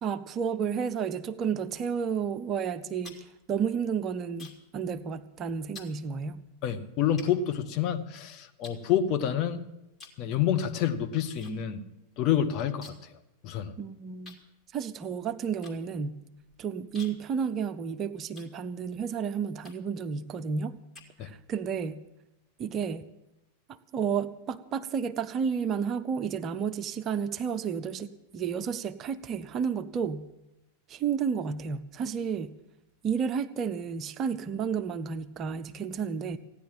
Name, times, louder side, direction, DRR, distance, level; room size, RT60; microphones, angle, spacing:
voice 1, 0.0-6.4 13.8-14.4 14.7-16.1 16.6-20.8 21.2-22.0 22.6-23.1 23.7-30.2 30.9-32.5 33.0-36.4, right 6 dB, 30° right, 12 dB, 0.6 m, -31 dB
sound 1, 2.8-4.8 5.1-5.4 5.7-6.0 6.6-6.7 7.2-8.1 8.6-9.5 9.9-10.3 10.5-11.5 11.8-11.9 12.2-13.2 13.5-13.6 14.2-19.0 19.6-20.0 20.5-21.6, left 4 dB, 20° left, 2.5 m, -51 dB
voice 2, 6.6-9.6 10.2-11.8 12.2-12.9 13.4-13.7 21.2-21.3, left 9 dB, 40° left, 6 dB, 1.2 m, -28 dB
15.5 x 10.0 x 7.6 m, 0.91 s
figure-of-eight pair, 90°, 0 cm